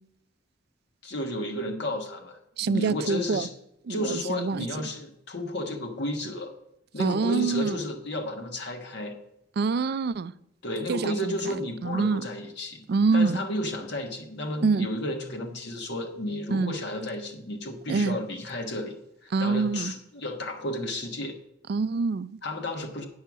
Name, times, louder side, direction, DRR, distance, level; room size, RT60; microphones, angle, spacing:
voice 1, 1.0-3.5 3.9-6.5 6.9-9.1 10.6-12.8 13.1-19.0 19.2-21.4 22.4-23.1, left 1 dB, 60° left, 1.3 m, -32 dB
voice 2, 2.6-3.5 3.9-4.7 7.0-7.8 9.6-10.3 10.9-11.5 11.8-12.2 12.9-13.4 14.6-14.9 16.5-16.7 17.9-18.2 19.3-19.9 21.7-22.4, right 4 dB, 55° right, 0.4 m, -25 dB
9.5 x 5.6 x 6.0 m
head